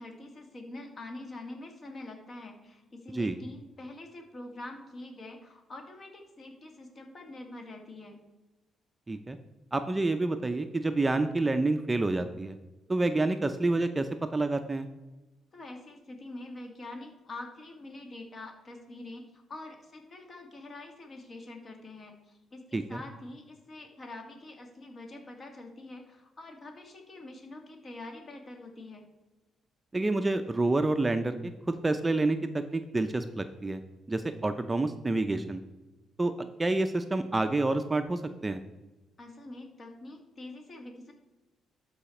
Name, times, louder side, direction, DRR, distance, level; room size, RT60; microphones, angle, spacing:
voice 1, 0.0-8.2 15.5-29.1 39.2-41.1, left 2 dB, 40° left, 3 dB, 2.1 m, -45 dB
voice 2, 9.7-12.6 12.9-14.9 22.7-23.0 29.9-33.8 34.1-35.6 36.2-36.3 36.6-38.6, right 2 dB, 20° right, 8 dB, 0.5 m, -28 dB
12.0 x 4.9 x 4.4 m, 1.1 s
cardioid pair, 90°, 0 cm